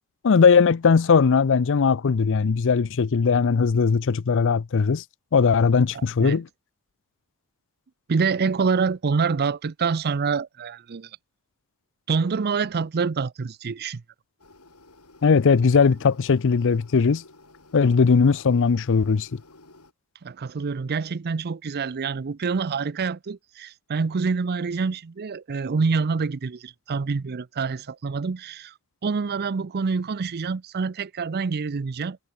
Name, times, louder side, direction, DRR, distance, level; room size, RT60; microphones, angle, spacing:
voice 1, 0.2-5.0 5.3-6.5 15.2-17.2 17.7-19.3, left 5 dB, 60° left, 0.5 m, -19 dB
voice 2, 5.9-6.4 8.1-11.1 12.1-14.0 20.2-28.7 29.0-32.2, right 5 dB, 45° right, 0.5 m, -26 dB
sound 1, 14.4-19.9, left 2 dB, 85° left, 6.5 m, -53 dB
head